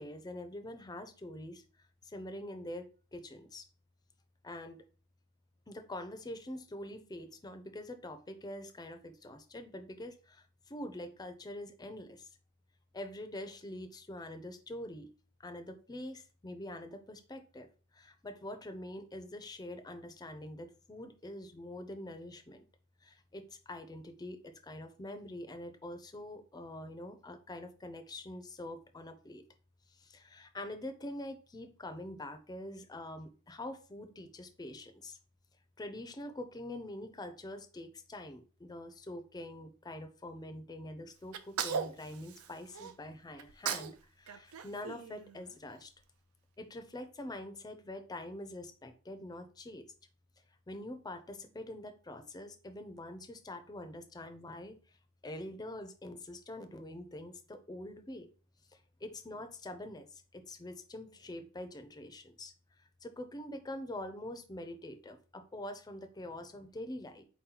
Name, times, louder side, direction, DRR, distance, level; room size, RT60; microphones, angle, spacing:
voice 1, 0.0-1.6 2.0-3.7 4.4-4.8 5.7-12.3 12.9-15.1 15.4-17.7 17.9-22.6 23.0-29.4 29.9-35.2 35.8-45.9 46.6-49.8 50.7-54.8 55.2-58.3 59.0-62.5 63.0-67.3, left 1 dB, 20° left, 8 dB, 0.5 m, -45 dB
Sneeze, 41.3-42.9 43.4-44.0 44.3-45.7, right 7 dB, 75° right, 0.4 m, -38 dB
4.4 x 2.9 x 3.7 m, 0.37 s
head